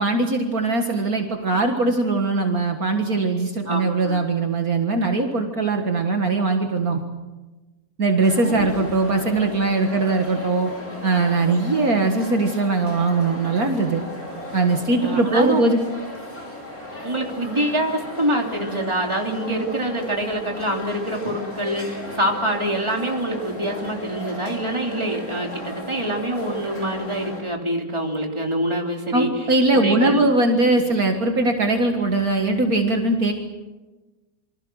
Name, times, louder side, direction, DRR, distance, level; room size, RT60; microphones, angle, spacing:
voice 1, 0.0-7.0 8.0-10.7 11.0-14.0 14.5-15.8 29.1-33.3, right 3 dB, 55° right, 4 dB, 2.2 m, -21 dB
voice 2, 3.7-4.2 8.4-8.9 15.0-15.6 17.0-30.3 30.6-30.8, right 1 dB, 15° right, 1 dB, 3.3 m, -26 dB
sound 1, 8.2-27.4, left 1 dB, 55° left, 6.4 m, -36 dB
27.5 x 24.5 x 6.4 m, 1.2 s
omnidirectional pair, 1.9 m